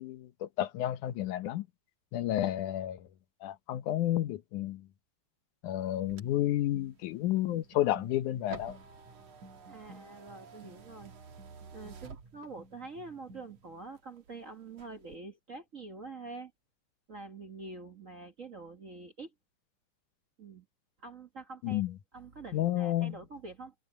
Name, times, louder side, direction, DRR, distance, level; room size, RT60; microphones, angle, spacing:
voice 1, 0.0-1.7 2.1-3.0 3.4-4.8 5.6-8.8 21.6-21.9 22.5-23.2, left 13 dB, 85° left, 2.5 m, -31 dB
sound 1, 5.8-12.9 13.3-14.3 14.7-15.2, right 5 dB, 55° right, 3.3 m, -51 dB
sound 2, 6.0-13.7, right 2 dB, 85° right, 6.2 m, -56 dB
voice 2, 9.7-11.1 11.7-16.5 17.1-19.3 20.4-20.7 21.0-21.8 22.1-23.7, right 3 dB, 40° right, 1.1 m, -46 dB
omnidirectional pair, 3.4 m